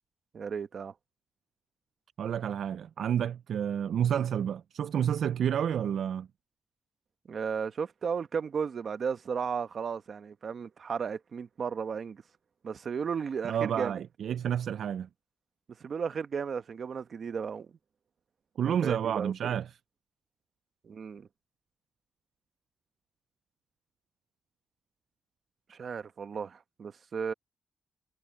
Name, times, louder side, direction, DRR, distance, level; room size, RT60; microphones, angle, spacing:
voice 1, 0.3-0.9 7.3-12.2 12.6-14.0 15.8-17.7 18.6-19.6 20.8-21.3 25.7-27.3, right 6 dB, 50° right, 1.0 m, -34 dB
voice 2, 2.2-6.3 13.4-15.1 18.6-19.8, right 9 dB, 75° right, 0.3 m, -30 dB
wide cardioid pair, 135°, 0 cm